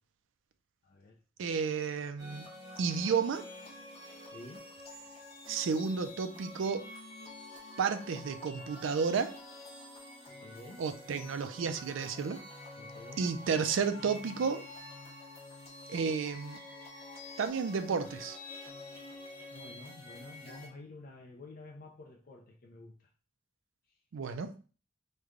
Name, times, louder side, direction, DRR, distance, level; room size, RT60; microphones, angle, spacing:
voice 1, 0.8-1.2 4.3-4.7 10.4-10.9 12.8-13.3 19.5-22.9, left 2 dB, 50° left, -1 dB, 0.5 m, -50 dB
voice 2, 1.4-2.4 2.8-3.4 5.5-6.9 7.8-9.3 10.8-12.4 13.2-14.6 15.9-16.6 17.4-18.4 24.1-24.5, right 5 dB, 80° right, 10 dB, 0.4 m, -32 dB
sound 1, 2.2-20.7, left 2 dB, 30° left, 1.0 m, -48 dB
3.2 x 2.2 x 3.6 m, 0.37 s
head